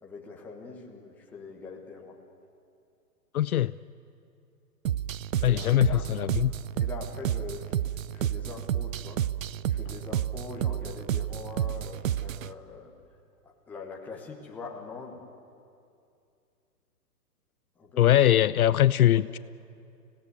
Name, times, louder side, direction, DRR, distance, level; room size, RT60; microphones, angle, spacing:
voice 1, 0.0-2.2 5.4-6.0 6.7-7.7 8.1-9.2 9.7-12.9 13.4-15.2 17.8-18.5 19.1-19.4, left 4 dB, 5° left, 0.9 m, -43 dB
voice 2, 3.3-3.7 5.4-6.5 18.0-19.4, left 12 dB, 65° left, 0.5 m, -22 dB
sound 1, 4.9-12.5, right 10 dB, 55° right, 0.6 m, -30 dB
25.5 x 17.0 x 9.6 m
hypercardioid pair, 165°, 48 cm